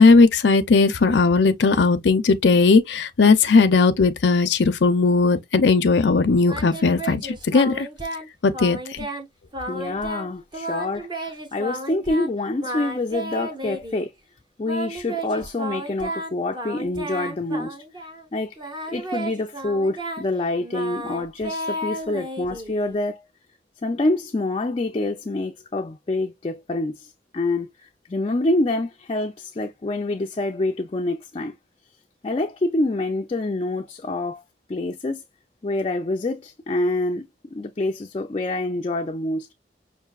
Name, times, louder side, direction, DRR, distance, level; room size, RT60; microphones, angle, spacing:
voice 1, 0.0-7.9 8.4-9.0, left 4 dB, 80° left, 0.6 m, -17 dB
Singing, 6.4-8.3 8.5-9.3 9.5-10.3 10.5-12.3 12.6-14.1 14.7-18.3 18.6-23.0, right 1 dB, 25° right, 0.9 m, -33 dB
voice 2, 9.7-14.1 14.6-17.8 18.3-18.6 18.9-23.2 23.8-31.5 32.2-34.4 34.7-35.2 35.6-39.5, left 2 dB, 30° left, 0.4 m, -26 dB
5.6 x 2.6 x 2.3 m
head